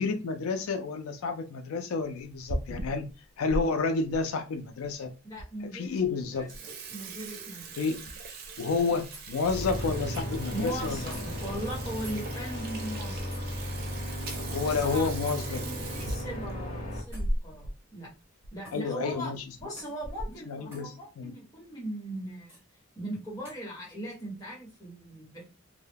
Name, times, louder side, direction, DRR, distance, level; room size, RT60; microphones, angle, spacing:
voice 1, 0.0-3.1 3.4-5.1 5.7-6.5 7.8-8.0 8.6-11.0 14.3-15.6 18.7-19.4 20.5-20.9 21.2-21.3, left 4 dB, 85° left, 6 dB, 0.4 m, -30 dB
Water tap faucet / Sink (filling or washing), 2.3-3.6 4.1-4.2 4.9-5.0 5.4-5.5 5.9-6.1 6.4-17.8 18.1-18.2 18.4-18.6 19.4-19.6 20.0-20.5, right 1 dB, 45° right, 0.4 m, -38 dB
voice 2, 5.2-6.6 6.9-7.8 10.5-13.3 14.6-18.1 18.5-19.3 19.6-22.6 22.9-25.4, right 1 dB, 15° left, -5 dB, 1.1 m, -39 dB
sound 1, 9.1-9.3 10.1-10.3 11.1-11.2 12.0-12.2 13.3-13.4 14.3-14.4 15.3-15.4 17.1-17.4 18.6-18.9 19.8-20.0 20.7-20.9 22.5-22.6 23.4-23.6, right 1 dB, 10° right, 1.3 m, -48 dB
sound 2, 9.4-17.0, equal, 35° left, 0.6 m, -35 dB
2.2 x 2.1 x 3.3 m, 0.30 s
head